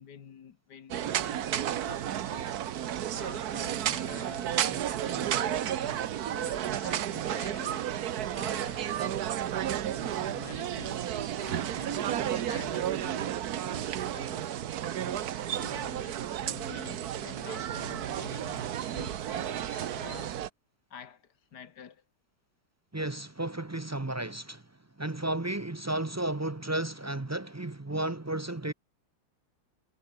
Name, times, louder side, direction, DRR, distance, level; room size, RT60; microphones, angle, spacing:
voice 1, 0.0-9.2 9.9-20.4 20.9-22.0, left 8 dB, 80° left, 2.1 m, -49 dB
sound 1, 0.9-20.5, right 11 dB, 70° right, 1.4 m, -32 dB
voice 2, 22.9-24.6 25.0-28.7, right 2 dB, 25° right, 0.3 m, -33 dB
omnidirectional pair, 1.8 m